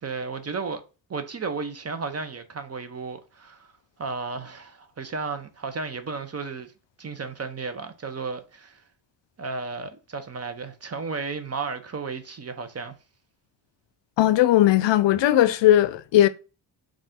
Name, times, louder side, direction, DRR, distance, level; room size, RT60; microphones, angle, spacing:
voice 1, 0.0-0.8 1.1-3.7 4.0-6.7 7.0-8.8 9.4-13.0, right 4 dB, 35° right, 0.7 m, -33 dB
voice 2, 14.2-16.3, left 13 dB, 75° left, 0.5 m, -18 dB
3.9 x 2.4 x 3.5 m
cardioid pair, 75°, 45 cm